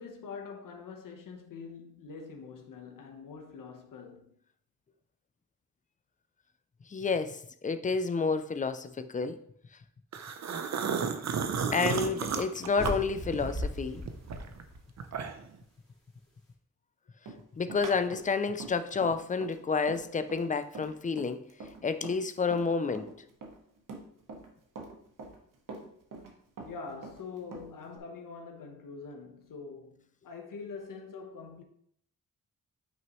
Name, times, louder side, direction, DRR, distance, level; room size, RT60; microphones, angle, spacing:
voice 1, 0.0-4.3 26.7-31.6, left 5 dB, 70° left, 1.1 m, -44 dB
voice 2, 6.9-9.4 11.7-14.0 17.6-21.4 21.8-23.1, left 4 dB, 25° left, 0.4 m, -30 dB
sound 1, 10.1-13.7 14.1-15.6, right 6 dB, 55° right, 0.7 m, -33 dB
sound 2, 12.7-15.1, left 1 dB, 5° left, 2.4 m, -37 dB
Run, 17.3-22.7 22.9-24.5 24.8-26.3 26.6-28.0, right 3 dB, 70° right, 1.4 m, -44 dB
9.0 x 6.0 x 3.0 m
wide cardioid pair, 180°, 33 cm